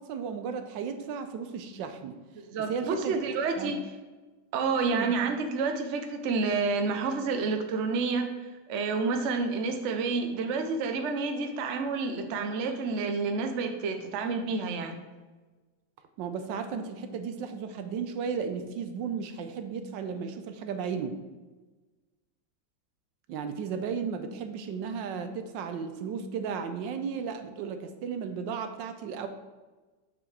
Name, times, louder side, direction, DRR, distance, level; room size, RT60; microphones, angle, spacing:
voice 1, 0.0-2.2 2.7-3.2 3.6-3.7 4.9-5.1 16.2-21.2 23.3-29.3, right 6 dB, 85° right, 8 dB, 1.4 m, -34 dB
voice 2, 2.3-3.8 4.5-8.3 8.7-15.0, right 4 dB, 55° right, 5 dB, 0.9 m, -29 dB
7.3 x 6.0 x 3.3 m, 1.2 s
omnidirectional pair, 1.9 m